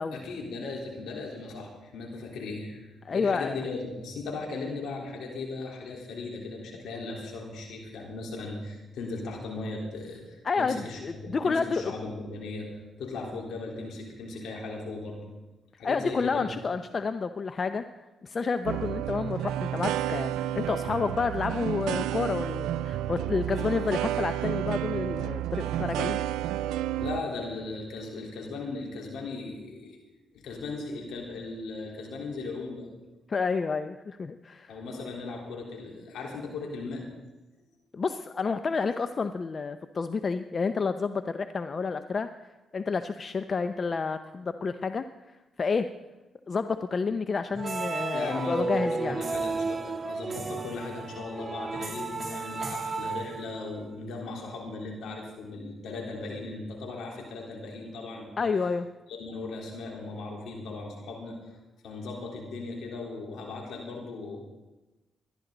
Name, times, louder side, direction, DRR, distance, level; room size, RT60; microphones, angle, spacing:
voice 1, 0.1-12.7 13.0-15.3 15.8-16.5 27.0-30.0 30.3-32.9 34.7-37.0 48.1-58.5 59.1-61.4 61.8-64.4, left 3 dB, 75° left, -1 dB, 3.9 m, -37 dB
voice 2, 3.0-3.6 10.4-11.9 15.8-17.8 18.2-26.2 33.3-34.7 37.9-45.0 45.6-45.9 46.5-49.2 58.4-58.9, left 4 dB, 45° left, 10 dB, 0.7 m, -30 dB
sound 1, 18.7-27.2, right 12 dB, 85° right, 0.4 m, -31 dB
sound 2, 47.5-53.8, right 4 dB, 30° right, 2.3 m, -33 dB
20.5 x 12.0 x 4.0 m, 1.1 s
supercardioid pair, 55°, 0 cm